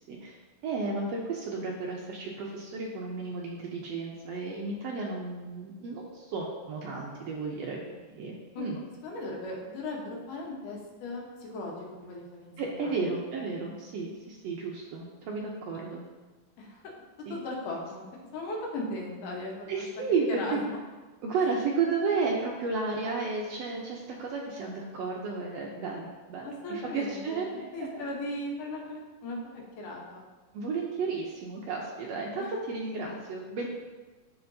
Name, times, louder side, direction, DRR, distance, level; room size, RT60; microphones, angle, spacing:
voice 1, 0.6-8.8 12.6-16.0 17.3-17.4 19.7-20.6 21.2-28.0 30.5-33.7, right 4 dB, 80° right, -2 dB, 1.5 m, -33 dB
voice 2, 9.0-12.9 16.6-16.8 17.3-18.0 18.3-20.6 26.4-27.5 27.7-29.4 29.8-30.3 32.4-32.5 33.6-33.7, left 2 dB, 75° left, -1 dB, 2.6 m, -37 dB
12.5 x 4.2 x 2.7 m, 1.3 s
omnidirectional pair, 3.8 m